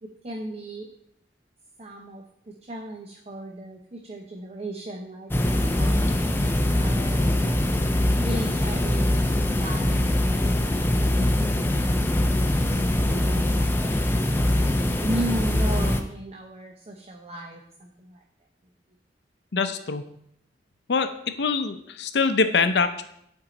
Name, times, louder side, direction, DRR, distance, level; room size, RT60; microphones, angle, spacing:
voice 1, 0.0-0.9 1.8-2.2 2.6-6.2 6.8-7.5 8.2-10.7 11.6-12.6 13.1-13.7 15.0-18.2, right 1 dB, 35° right, 1 dB, 0.6 m, -36 dB
sound 1, 5.3-16.0, left 1 dB, 15° left, 0.5 m, -23 dB
voice 2, 19.5-20.1 20.9-21.1 21.4-23.0, left 4 dB, 70° left, 10 dB, 0.6 m, -23 dB
8.8 x 4.5 x 3.9 m, 0.73 s
head